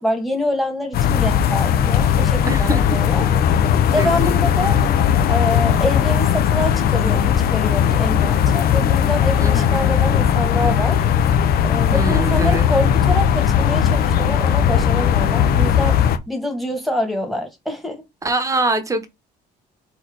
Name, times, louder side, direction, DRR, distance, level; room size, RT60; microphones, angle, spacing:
voice 1, 0.0-3.3 3.6-4.8 5.3-7.2 7.5-11.1 11.6-16.0 16.3-18.0, left 1 dB, ahead, 1.6 m, -25 dB
sound 1, 0.9-16.2, left 8 dB, 65° left, 0.7 m, -17 dB
voice 2, 2.4-2.8 4.0-4.4 9.4-9.7 11.9-12.7 18.2-19.1, right 2 dB, 20° right, 1.0 m, -23 dB
4.3 x 3.1 x 3.8 m
cardioid pair, 110°, 17 cm